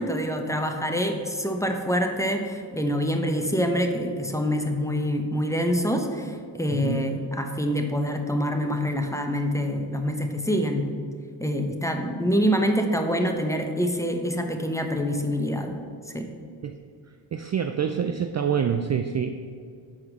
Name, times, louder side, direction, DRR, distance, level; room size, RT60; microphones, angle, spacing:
voice 1, 0.0-10.9 11.4-15.8 16.1-16.3, equal, 5° left, 4 dB, 0.9 m, -26 dB
voice 2, 17.3-19.3, right 7 dB, 35° right, 8 dB, 0.4 m, -26 dB
6.1 x 4.7 x 6.0 m, 2.2 s
cardioid pair, 50°, 48 cm